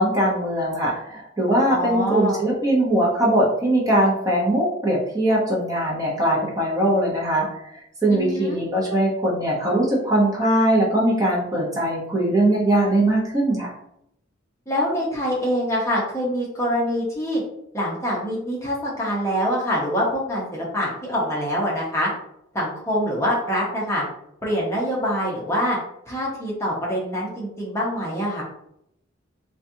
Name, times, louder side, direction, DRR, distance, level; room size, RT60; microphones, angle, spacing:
voice 1, 0.0-13.7, right 1 dB, 20° right, -5 dB, 0.8 m, -21 dB
voice 2, 1.7-2.4 8.1-8.6 14.7-17.4 17.7-22.1 22.5-24.0 24.4-25.8 26.1-28.4, equal, 15° left, -5 dB, 0.8 m, -25 dB
4.0 x 2.3 x 2.7 m, 0.76 s
head